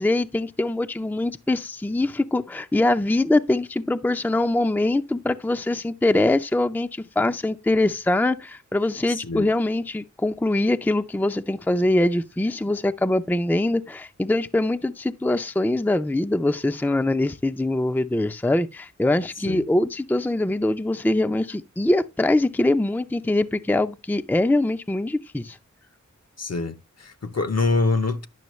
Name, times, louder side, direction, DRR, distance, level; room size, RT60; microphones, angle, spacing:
voice 1, 0.0-25.6, left 2 dB, 5° left, 0.5 m, -23 dB
voice 2, 9.1-9.5 19.4-19.6 26.4-28.3, left 3 dB, 55° left, 1.0 m, -25 dB
10.5 x 6.1 x 3.1 m
wide cardioid pair, 50°, 30 cm